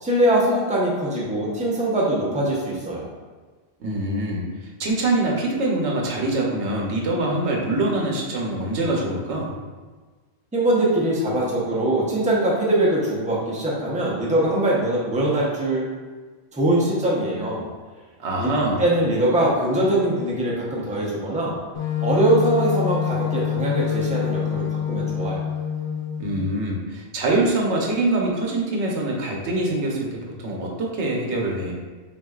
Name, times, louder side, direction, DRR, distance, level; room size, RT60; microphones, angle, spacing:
voice 1, 0.0-3.1 10.5-15.9 16.5-17.7 18.4-21.6 22.0-25.4, right 1 dB, 10° right, -6 dB, 0.7 m, -22 dB
voice 2, 3.8-4.5 4.8-9.5 18.2-18.8 26.2-30.1 30.4-31.7, right 2 dB, 90° right, -1 dB, 1.1 m, -24 dB
Wind instrument woodwind instrument, 21.7-26.4, left 9 dB, 80° left, 0.9 m, -26 dB
6.0 x 2.6 x 2.3 m, 1.4 s
omnidirectional pair, 1.1 m